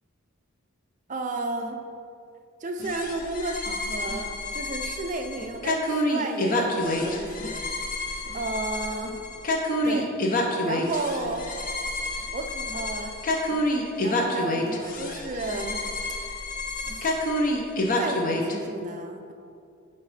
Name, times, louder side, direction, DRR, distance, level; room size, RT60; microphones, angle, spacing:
voice 1, 1.1-1.8 2.6-7.6 8.3-9.2 9.8-10.2 10.6-11.5 12.3-13.2 14.0-15.8 16.8-17.1 18.0-19.3, right 2 dB, 35° right, 5 dB, 0.5 m, -32 dB
sound 1, 1.6-1.7 2.3-2.4 2.8-3.1 4.1-4.3 5.4-5.6 7.4-7.5 8.2-8.5 9.0-9.3 9.8-10.1 10.6-10.8 12.2-12.3 12.6-12.9 13.3-13.6 14.2-14.3 14.7-14.9 15.2-15.7 16.8-17.1, equal, 15° right, 1.2 m, -44 dB
sound 2, 2.8-18.5, left 1 dB, 40° left, 0.6 m, -28 dB
6.1 x 4.6 x 5.0 m, 2.4 s
head